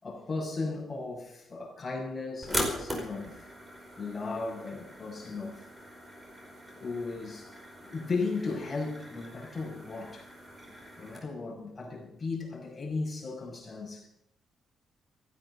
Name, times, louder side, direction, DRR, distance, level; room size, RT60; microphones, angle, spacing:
voice 1, 0.0-3.5 4.0-5.6 6.8-7.5 7.8-10.3 11.0-14.1, left 3 dB, 25° left, 6.4 m, -36 dB
sound 1, 2.4-11.2, equal, 20° right, 4.9 m, -40 dB
16.0 x 14.5 x 5.6 m
cardioid pair, 105°, 0 cm